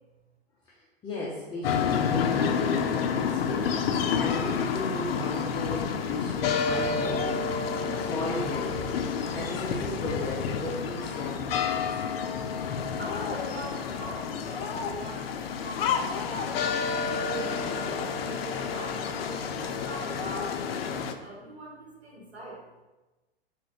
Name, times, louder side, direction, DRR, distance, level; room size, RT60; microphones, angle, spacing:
voice 1, 1.0-3.8 4.1-7.5 7.9-8.9 9.3-11.9, left 1 dB, 15° left, -5 dB, 0.5 m, -36 dB
sound 1, 1.6-21.1, left 6 dB, 70° left, 0.5 m, -29 dB
voice 2, 13.0-16.6 17.1-22.6, right 1 dB, 90° right, -4 dB, 1.2 m, -42 dB
3.6 x 2.6 x 3.6 m, 1.1 s
hypercardioid pair, 105°, 30 cm